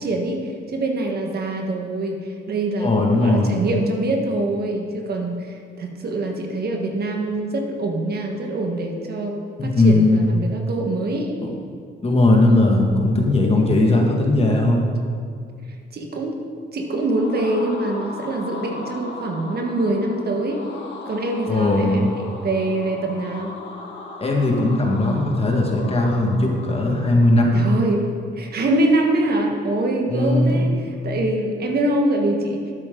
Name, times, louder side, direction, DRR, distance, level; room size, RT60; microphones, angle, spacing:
voice 1, 0.0-9.3 9.6-11.4 15.9-16.3 16.7-20.6 21.0-23.5 27.5-28.1 28.4-32.6, right 2 dB, 50° right, 2 dB, 1.5 m, -24 dB
voice 2, 2.8-3.6 9.6-10.2 12.0-14.9 21.5-22.1 24.2-27.6 30.1-30.7, left 2 dB, 30° left, 0 dB, 1.9 m, -18 dB
sound 1, 16.8-27.7, left 3 dB, 70° left, 1.6 m, -38 dB
12.0 x 8.7 x 3.9 m, 2.2 s
cardioid pair, 90°, 20 cm